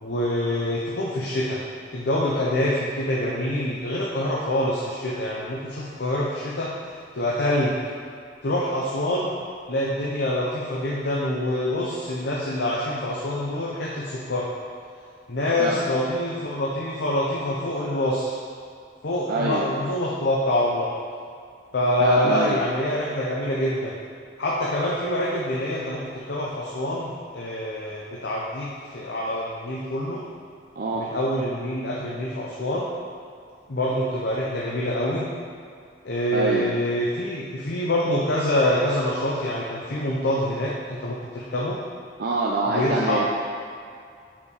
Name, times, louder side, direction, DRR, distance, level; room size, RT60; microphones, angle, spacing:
voice 1, 0.0-1.6 1.9-6.7 7.1-7.8 8.4-9.3 9.7-14.5 15.3-18.3 19.0-20.9 21.7-24.0 24.4-30.2 31.0-32.9 33.7-35.3 36.0-41.8 42.7-43.2, left 1 dB, 65° left, -4 dB, 0.8 m, -25 dB
voice 2, 19.3-19.6 22.0-22.6 30.8-31.1 36.3-36.7 42.2-43.3, right 2 dB, 55° right, -4 dB, 0.5 m, -25 dB
5.8 x 4.5 x 4.8 m, 2.4 s
head